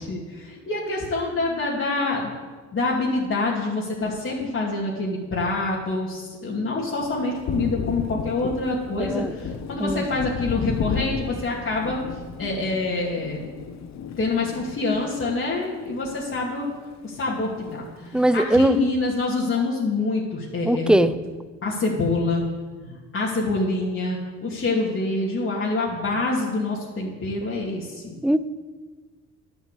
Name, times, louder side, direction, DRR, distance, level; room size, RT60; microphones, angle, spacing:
voice 1, 0.0-2.3 2.7-12.0 12.4-13.5 14.2-16.7 17.0-21.1 21.6-22.5 22.8-28.1, left 3 dB, 45° left, -6 dB, 2.7 m, -26 dB
Thunder, 7.0-16.8 17.1-18.2, left 6 dB, 65° left, 1.0 m, -34 dB
voice 2, 9.0-9.3 9.8-10.1 18.1-18.8 20.6-21.1 28.2-28.4, right 1 dB, 5° right, 13 dB, 0.6 m, -20 dB
11.0 x 7.7 x 8.3 m, 1.4 s
cardioid pair, 90°, 30 cm